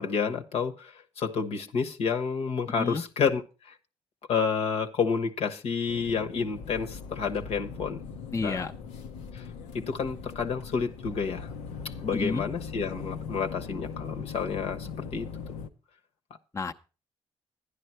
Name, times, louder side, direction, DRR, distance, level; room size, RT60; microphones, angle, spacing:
voice 1, 0.0-3.7 4.3-8.0 8.4-8.7 9.3-9.5 9.7-11.5 12.0-15.6, left 6 dB, 65° left, 1.2 m, -30 dB
sound 1, 5.9-15.7, left 6 dB, 80° left, 0.9 m, -40 dB
voice 2, 8.3-8.7 12.1-12.4 16.5-16.7, left 4 dB, 25° left, 0.8 m, -30 dB
11.5 x 10.5 x 4.4 m
hypercardioid pair, 50°, 11 cm